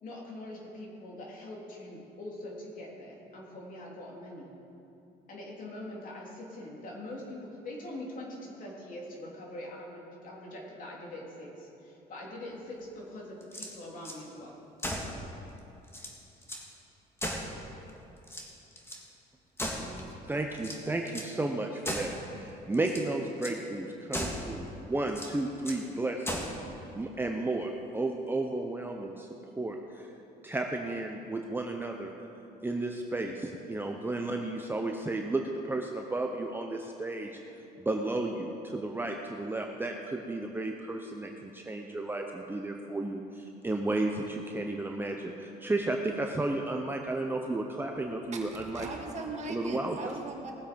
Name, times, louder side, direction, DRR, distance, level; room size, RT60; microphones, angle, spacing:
voice 1, 0.0-4.5 5.3-7.4 7.6-14.5 14.9-15.4, left 1 dB, 55° left, -2 dB, 3.2 m, -43 dB
sound 1, 13.4-14.2 14.8-15.2 15.6-15.7 15.9-16.7 17.2-17.9 18.2-19.0 19.6-20.1 20.6-21.4 21.8-22.2 22.7-23.1 23.4-23.6 24.1-24.5 25.1-25.9 26.2-26.6, equal, 15° left, 1.8 m, -37 dB
voice 2, 19.8-26.6 26.9-29.3 29.6-30.1 30.4-32.1 32.6-37.4 37.8-48.9 49.5-50.1, right 2 dB, 10° right, 2 dB, 0.8 m, -33 dB
voice 3, 48.3-50.5, right 3 dB, 45° right, 1 dB, 1.8 m, -40 dB
18.5 x 7.6 x 5.2 m, 2.9 s
cardioid pair, 110°, 17 cm